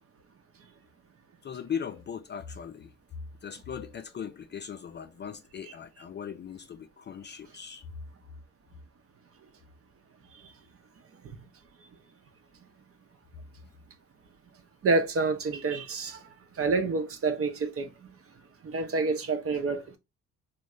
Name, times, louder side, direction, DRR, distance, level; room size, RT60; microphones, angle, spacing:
voice 1, 1.4-2.9 3.4-7.9, left 7 dB, 35° left, 0.4 m, -39 dB
voice 2, 14.8-16.2 16.6-17.9 18.6-20.0, right 3 dB, 40° right, 0.7 m, -28 dB
3.1 x 2.1 x 3.6 m
supercardioid pair, 65°, 34 cm